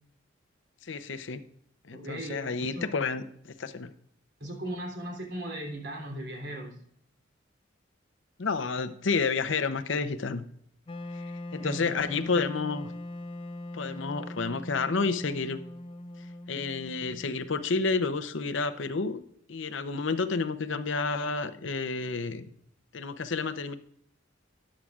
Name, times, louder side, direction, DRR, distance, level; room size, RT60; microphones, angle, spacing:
voice 1, 0.8-1.4 1.8-3.9 8.4-10.4 11.1-11.2 11.5-12.9 13.7-15.6 16.5-19.2 19.5-22.5 22.9-23.7, left 4 dB, 70° left, 10 dB, 0.7 m, -30 dB
voice 2, 1.9-2.9 4.4-6.8 11.6-12.2, right 1 dB, 60° right, 0 dB, 3.3 m, -38 dB
Wind instrument woodwind instrument, 10.9-17.8, left 1 dB, 25° left, 0.4 m, -41 dB
13.5 x 9.8 x 2.4 m, 0.67 s
head